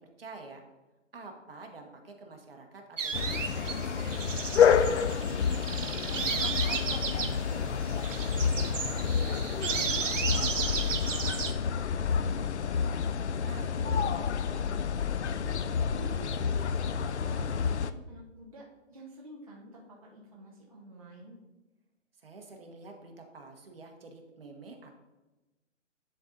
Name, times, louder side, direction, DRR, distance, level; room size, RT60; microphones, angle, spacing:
voice 1, 0.2-0.6 1.1-3.9 13.3-14.0 22.2-24.9, right 3 dB, 50° right, 3 dB, 1.3 m, -48 dB
sound 1, 3.0-11.5, right 6 dB, 75° right, 1.0 m, -34 dB
sound 2, 3.1-17.9, left 7 dB, 65° left, 0.5 m, -29 dB
voice 2, 5.0-9.9 10.2-12.9 13.6-15.6 15.9-16.6 17.0-21.4, right 2 dB, 30° right, -4 dB, 0.7 m, -50 dB
10.5 x 3.9 x 3.8 m, 1.1 s
hypercardioid pair, 175°, 38 cm